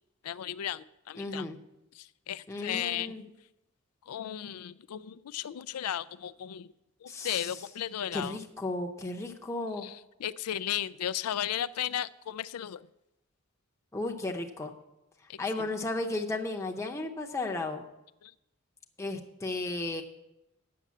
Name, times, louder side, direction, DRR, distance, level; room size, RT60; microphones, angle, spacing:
voice 1, 0.2-1.5 1.9-3.2 4.1-6.7 7.0-8.4 9.8-12.9 15.3-15.6 18.2-18.3, left 10 dB, 85° left, 18 dB, 0.4 m, -35 dB
voice 2, 1.2-1.6 2.5-3.2 7.1-7.5 8.1-9.9 13.9-14.7 15.4-17.8 19.0-20.0, left 2 dB, 15° left, 1 dB, 0.7 m, -34 dB
8.6 x 6.6 x 8.3 m, 0.91 s
head